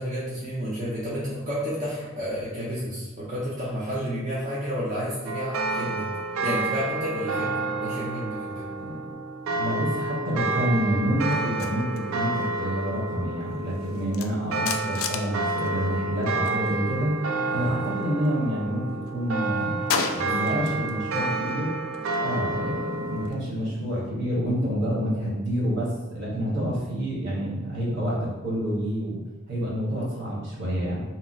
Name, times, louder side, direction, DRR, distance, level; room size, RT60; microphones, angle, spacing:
voice 1, 0.0-6.1 6.4-8.7 20.2-20.6, equal, 35° right, -9 dB, 0.6 m, -31 dB
sound 1, 5.3-23.3, right 3 dB, 85° right, 0.4 m, -30 dB
voice 2, 9.5-17.1 17.5-19.8 20.1-21.7 22.1-29.2 29.5-31.0, equal, 60° right, -6 dB, 1.2 m, -28 dB
sound 2, 11.3-16.6 16.9-18.5 18.9-21.0 21.3-24.1, left 6 dB, 80° left, 0.3 m, -36 dB
2.8 x 2.0 x 3.9 m, 1.1 s
head